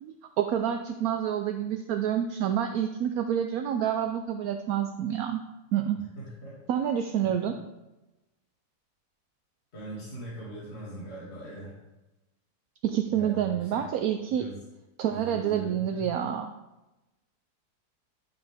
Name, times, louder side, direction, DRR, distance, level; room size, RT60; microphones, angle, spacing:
voice 1, 0.0-5.4 5.7-6.0 6.7-7.5 12.8-14.4 15.0-16.5, right 9 dB, 70° right, 6 dB, 1.0 m, -28 dB
voice 2, 6.2-6.6 7.2-7.5 9.7-11.8 13.1-13.9 14.3-14.7 15.1-16.1, right 1 dB, 40° left, -9 dB, 2.8 m, -41 dB
11.0 x 5.2 x 3.5 m, 1.0 s
omnidirectional pair, 1.7 m